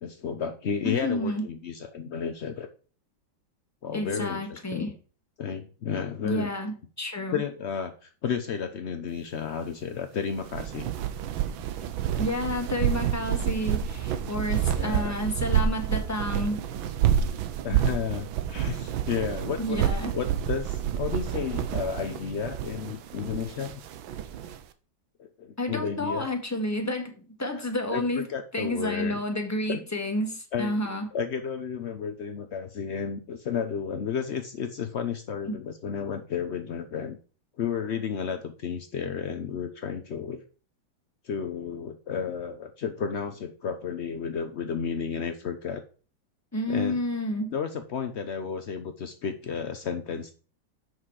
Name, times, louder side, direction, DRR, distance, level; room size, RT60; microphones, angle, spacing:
voice 1, 0.0-2.7 3.8-4.9 5.4-6.5 7.3-10.9 14.8-15.1 17.6-19.8 20.1-23.8 25.2-26.3 27.9-29.2 29.7-29.8 30.5-30.7 31.1-37.2 37.6-40.4 41.2-45.8 46.7-47.0 47.5-50.3, left 7 dB, 75° left, 8 dB, 0.6 m, -32 dB
voice 2, 0.8-1.4 3.9-4.9 6.2-7.4 12.2-16.6 19.6-20.1 25.6-27.1 27.4-28.3 28.5-31.1 35.5-35.6 46.5-47.5, left 1 dB, 10° left, 4 dB, 1.5 m, -30 dB
sound 1, 10.4-24.6, right 10 dB, 90° right, 1.6 m, -29 dB
7.7 x 6.4 x 4.7 m, 0.38 s
omnidirectional pair, 2.1 m